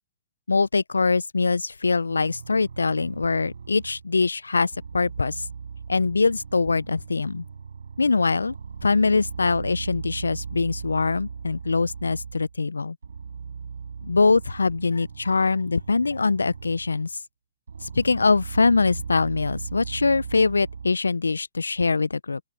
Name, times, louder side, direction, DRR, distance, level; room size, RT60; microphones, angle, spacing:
voice 1, 0.5-5.4 5.9-7.4 8.0-8.5 8.8-13.0 14.0-17.1 17.8-22.4, left 4 dB, 85° left, 0.6 m, -23 dB
sound 1, 2.1-4.1 4.7-12.6 13.0-17.2 17.7-20.9, right 6 dB, 75° right, 7.2 m, -38 dB
open air
figure-of-eight pair, 120°, 0 cm